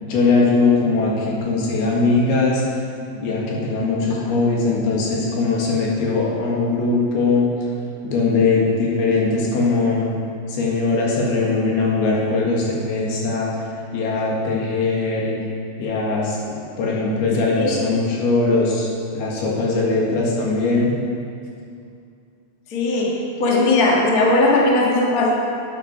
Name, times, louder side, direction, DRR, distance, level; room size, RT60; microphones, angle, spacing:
voice 1, 0.0-2.6 3.2-7.4 8.0-10.1 10.5-13.5 13.9-15.3 15.8-16.4 16.8-20.9, left 3 dB, 90° left, -3 dB, 3.8 m, -20 dB
voice 2, 17.5-18.0 22.7-25.3, left 2 dB, 50° left, -3 dB, 1.1 m, -18 dB
12.0 x 9.6 x 4.4 m, 2.4 s
omnidirectional pair, 4.4 m